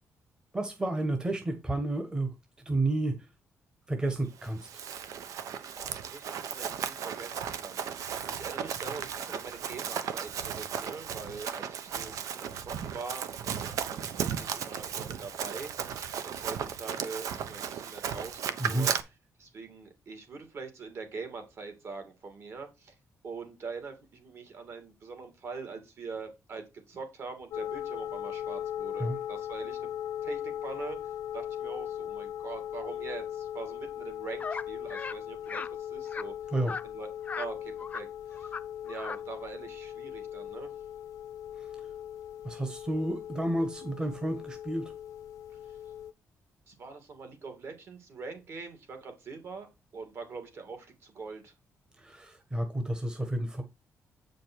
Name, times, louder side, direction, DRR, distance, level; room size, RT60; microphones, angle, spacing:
voice 1, 0.5-2.3 2.6-3.1 3.9-4.7 18.6-18.9 29.0-29.2 36.5-36.8 42.4-44.9 52.0-53.6, right 1 dB, 15° right, 6 dB, 1.2 m, -31 dB
Run, 4.4-19.0, right 8 dB, 75° right, 1.0 m, -35 dB
voice 2, 5.7-15.7 16.2-18.9 19.4-22.9 23.2-29.9 30.2-31.0 31.3-36.3 36.8-37.1 37.4-38.5 38.8-40.7 46.7-51.5, right 4 dB, 50° right, 6 dB, 2.7 m, -43 dB
sound 1, 27.5-46.1, left 10 dB, 80° left, 0.5 m, -39 dB
sound 2, 34.4-34.6 34.9-35.2 35.5-35.7 36.1-36.2 36.7-36.8 37.2-37.5 37.8-38.0 38.3-38.6 38.9-39.2, left 5 dB, 25° left, 0.6 m, -37 dB
8.4 x 5.2 x 4.6 m, 0.24 s
cardioid pair, 155°, 6 cm